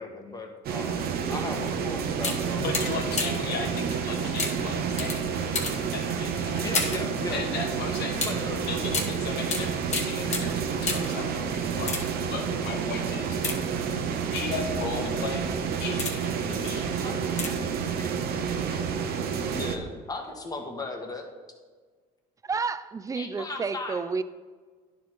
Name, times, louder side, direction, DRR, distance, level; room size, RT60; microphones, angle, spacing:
voice 1, 0.0-2.6 6.6-7.4 8.2-8.7 13.3-13.4 14.9-15.3 16.7-17.1 19.5-21.2 23.1-24.0, left 2 dB, 20° left, 2 dB, 1.2 m, -37 dB
sound 1, 0.6-19.8, right 6 dB, 65° right, 0.8 m, -29 dB
voice 2, 1.2-1.6 22.4-24.2, right 4 dB, 20° right, 13 dB, 0.4 m, -31 dB
sound 2, 1.6-1.8 2.2-3.5 4.4-7.1 8.2-11.2 11.7-12.4 13.3-14.2 14.8-15.1 15.6-16.4 17.3-17.8 18.0-18.1, left 4 dB, 40° left, 1.2 m, -33 dB
voice 3, 2.6-5.3 5.9-6.6 7.3-8.3 8.7-13.4 14.3-15.4 15.8-17.2, left 4 dB, 75° left, 3 dB, 1.4 m, -36 dB
10.5 x 4.7 x 4.1 m, 1.5 s
cardioid pair, 110°, 17 cm